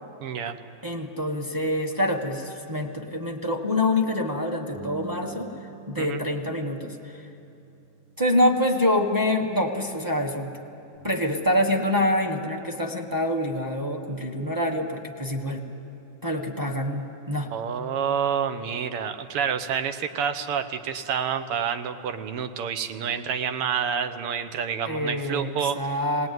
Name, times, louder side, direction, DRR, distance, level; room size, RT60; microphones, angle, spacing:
voice 1, 0.2-0.6 6.0-6.2 17.5-25.8, right 7 dB, 85° right, 9 dB, 1.9 m, -28 dB
voice 2, 0.8-5.5 5.9-7.0 8.2-10.5 11.0-15.6 16.2-17.5 24.9-25.5 25.8-26.3, left 1 dB, 15° right, 1 dB, 0.9 m, -26 dB
Bass guitar, 4.7-11.0, right 4 dB, 70° right, 3.5 m, -48 dB
20.5 x 18.0 x 9.4 m, 2.9 s
omnidirectional pair, 2.4 m